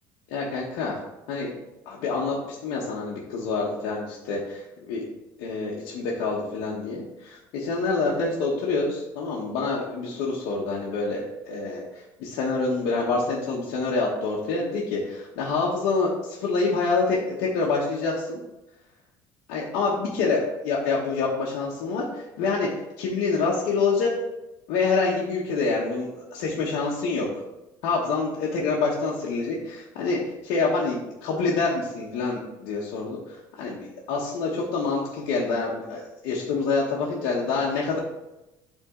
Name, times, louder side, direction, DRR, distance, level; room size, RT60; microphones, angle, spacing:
voice 1, 0.3-1.0 1.3-1.5 1.9-5.0 5.4-18.4 19.5-22.7 23.0-24.1 24.7-27.3 27.8-38.0, left 4 dB, 75° left, -4 dB, 1.2 m, -27 dB
8.3 x 3.7 x 3.8 m, 0.97 s
cardioid pair, 150°, 8 cm